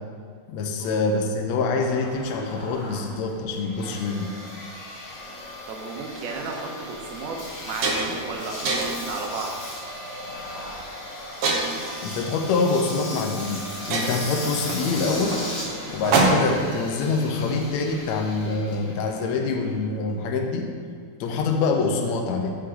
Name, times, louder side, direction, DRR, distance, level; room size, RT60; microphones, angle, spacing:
voice 1, 0.5-4.3 12.0-15.4 15.9-20.7 21.2-22.5, left 4 dB, 90° left, 3 dB, 1.5 m, -25 dB
Engine, 1.8-20.2, left 1 dB, 50° left, 0.9 m, -37 dB
voice 2, 5.7-9.6, right 4 dB, 80° right, 1 dB, 3.0 m, -34 dB
sound 1, 6.4-6.5 7.1-7.2 7.5-8.3 8.7-9.1 9.8-10.1 11.4-12.0 13.1-13.2 13.5-13.6 13.9-16.7, right 3 dB, 65° right, 2.1 m, -25 dB
15.5 x 6.3 x 3.8 m, 2.1 s
omnidirectional pair, 4.3 m